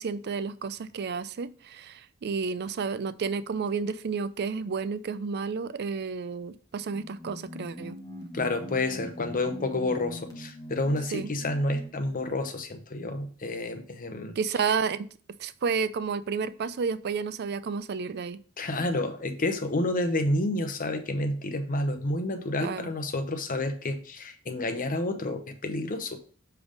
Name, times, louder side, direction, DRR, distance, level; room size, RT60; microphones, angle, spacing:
voice 1, 0.0-8.0 11.1-11.3 14.4-15.1 15.4-18.4 22.6-22.9, right 5 dB, 55° right, 14 dB, 0.4 m, -31 dB
sound 1, 6.9-12.1, left 1 dB, 20° left, 1.0 m, -42 dB
voice 2, 8.3-14.3 18.6-26.2, left 2 dB, 45° left, 7 dB, 0.9 m, -29 dB
7.0 x 3.4 x 5.1 m, 0.43 s
head